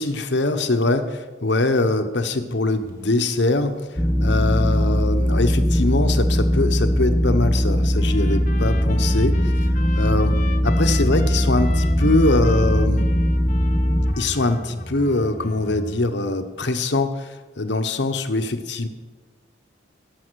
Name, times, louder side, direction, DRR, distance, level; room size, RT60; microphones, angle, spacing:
voice 1, 0.0-9.4 9.9-10.4 10.6-13.1 14.2-18.9, left 2 dB, 70° left, 8 dB, 1.0 m, -23 dB
sound 1, 2.7-2.9 3.4-4.5 4.9-5.8 6.4-16.0, equal, 15° right, 2.0 m, -33 dB
sound 2, 4.0-14.1, equal, 5° left, 0.5 m, -20 dB
Trumpet, 8.0-16.1, left 4 dB, 40° left, 1.0 m, -39 dB
16.5 x 7.1 x 6.3 m, 1.3 s
head